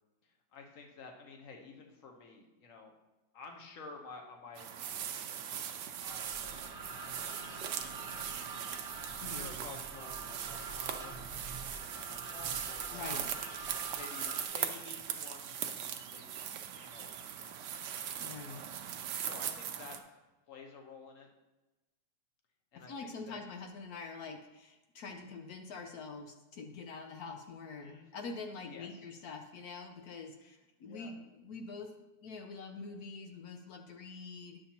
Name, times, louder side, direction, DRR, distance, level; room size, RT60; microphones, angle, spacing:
voice 1, 0.2-2.9 3.3-7.6 8.1-8.6 8.9-13.3 13.9-16.4 16.7-17.6 18.5-18.8 19.2-20.0 20.5-21.3 22.7-23.4 27.8-28.4 28.6-29.0 30.4-31.2, left 4 dB, 50° left, 2 dB, 1.2 m, -52 dB
sound 1, 4.5-20.0, right 9 dB, 75° right, 1.2 m, -40 dB
sound 2, 6.1-14.4, right 3 dB, 35° right, 0.6 m, -46 dB
voice 2, 12.9-13.3 18.2-18.7 22.9-31.9 32.2-34.6, left 4 dB, 65° left, 4 dB, 1.0 m, -45 dB
10.0 x 7.1 x 2.9 m, 1.1 s
omnidirectional pair, 2.0 m